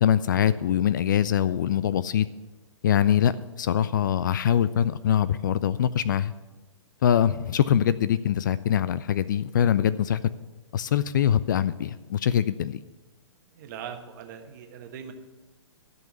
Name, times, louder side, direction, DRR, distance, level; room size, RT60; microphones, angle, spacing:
voice 1, 0.0-2.3 2.8-3.3 3.6-6.3 7.0-10.2 10.7-12.8, left 9 dB, 40° left, 16 dB, 0.3 m, -23 dB
voice 2, 13.5-15.1, right 8 dB, 40° right, 5 dB, 1.3 m, -40 dB
12.0 x 5.5 x 8.7 m, 1.2 s
figure-of-eight pair, 120°, 16 cm